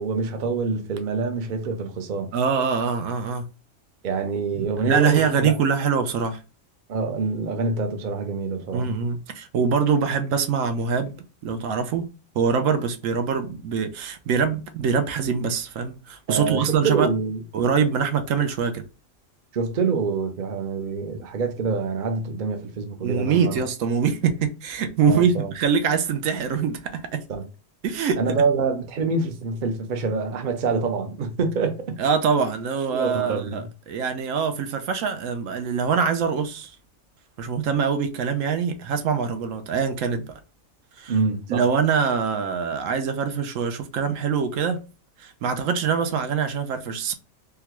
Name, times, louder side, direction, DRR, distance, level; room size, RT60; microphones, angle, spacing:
voice 1, 0.0-2.3 4.0-5.6 6.9-9.0 16.3-17.4 19.5-23.6 25.1-25.5 27.3-27.4 28.2-31.9 32.9-33.6 41.1-41.6, right 4 dB, 50° right, 0.6 m, -26 dB
voice 2, 2.3-3.4 4.6-6.4 8.7-11.1 11.4-17.1 17.5-18.8 23.0-27.2 27.8-28.2 32.0-36.8 37.4-40.4 41.0-41.1 41.5-44.8 45.2-47.1, right 6 dB, 75° right, 1.0 m, -24 dB
3.7 x 2.2 x 2.9 m
omnidirectional pair, 1.4 m